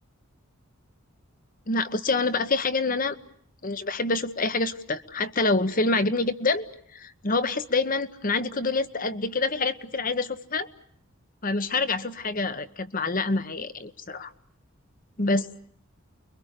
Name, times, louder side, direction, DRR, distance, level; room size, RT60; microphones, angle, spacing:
voice 1, 1.7-3.2 3.6-6.7 6.9-10.7 11.4-14.3 15.2-15.6, left 3 dB, 40° left, 12 dB, 1.2 m, -26 dB
30.0 x 23.0 x 6.8 m, 0.67 s
head